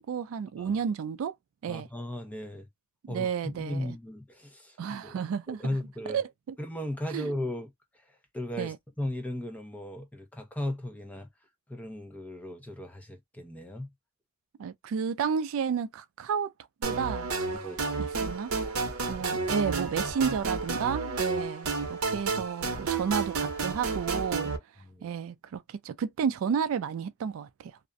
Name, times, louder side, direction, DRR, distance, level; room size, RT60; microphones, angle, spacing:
voice 1, 0.0-1.3 1.6-1.9 3.0-4.0 4.8-5.8 6.1-6.6 7.1-7.3 8.6-8.8 14.6-16.5 16.8-17.7 18.0-24.5 25.0-27.8, right 7 dB, 70° right, 0.3 m, -32 dB
voice 2, 1.7-2.7 3.1-4.8 5.0-5.2 5.5-6.2 6.6-11.3 11.7-13.9 17.5-18.0 24.8-25.1, left 1 dB, 5° left, 0.5 m, -37 dB
sound 1, 16.8-24.6, right 4 dB, 85° right, 0.7 m, -31 dB
2.4 x 2.1 x 2.5 m
head